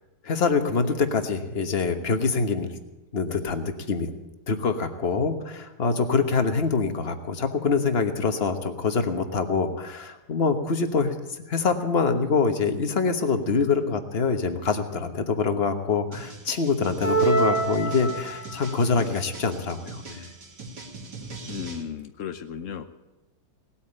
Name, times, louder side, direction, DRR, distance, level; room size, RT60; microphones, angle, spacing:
voice 1, 0.2-2.7 3.1-4.1 4.5-11.1 11.5-20.3, left 4 dB, 35° left, 8 dB, 1.2 m, -25 dB
sound 1, 16.1-21.8, right 3 dB, 50° right, 2.6 m, -41 dB
sound 2, 17.0-18.7, right 3 dB, 5° left, 1.7 m, -25 dB
voice 2, 21.5-22.8, left 7 dB, 75° left, 8 dB, 0.7 m, -35 dB
18.0 x 8.7 x 8.7 m, 1.0 s
omnidirectional pair, 2.3 m